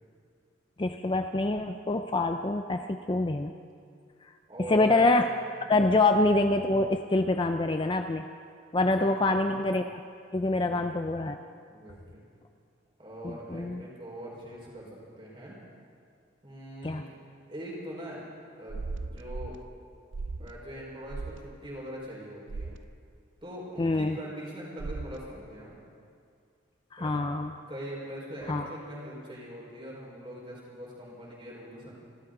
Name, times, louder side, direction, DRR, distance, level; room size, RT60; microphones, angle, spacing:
voice 1, 0.8-3.5 4.2-4.3 4.7-5.3 5.7-8.2 8.7-10.0 10.3-11.4 13.2-13.8 16.8-17.0 23.8-24.2 26.9-27.5 28.5-28.7, left 2 dB, 25° left, 6 dB, 0.5 m, -26 dB
voice 2, 4.5-5.2 8.7-9.5 10.5-10.9 11.7-12.2 13.0-15.6 16.4-17.0 17.5-18.2 18.6-19.5 20.4-22.7 23.4-25.8 27.0-27.2 27.7-31.9, equal, 25° right, -4 dB, 4.6 m, -42 dB
sound 1, 18.7-19.6 20.1-20.5 21.1-21.4 22.5-22.8 24.8-25.2, right 3 dB, 65° right, 0.5 m, -36 dB
28.5 x 13.0 x 3.9 m, 2.3 s
head